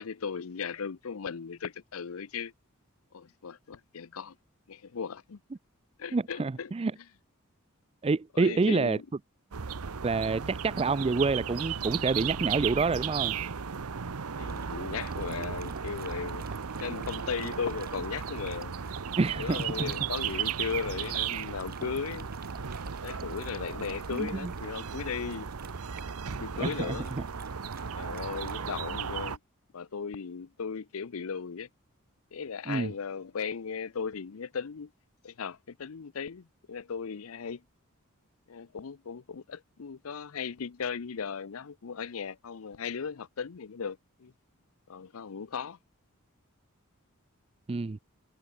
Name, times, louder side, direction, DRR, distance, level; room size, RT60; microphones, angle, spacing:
voice 1, 0.0-2.5 3.1-4.3 4.7-5.4 6.0-6.7 8.3-9.0 14.4-16.4 16.8-18.7 19.4-22.3 23.0-25.5 26.3-27.1 27.9-29.4 29.7-31.7 32.3-34.9 35.2-37.6 38.5-44.3 44.9-45.8, left 6 dB, 75° left, 0.6 m, -37 dB
voice 2, 6.1-6.9 8.0-9.0 10.0-13.4 19.2-19.9 24.1-24.5 26.6-27.2 32.7-32.9 47.7-48.0, right 3 dB, 25° right, 0.4 m, -28 dB
sound 1, 9.5-29.4, right 7 dB, 90° right, 0.8 m, -35 dB
Dog, 14.5-28.7, right 6 dB, 45° right, 3.7 m, -51 dB
head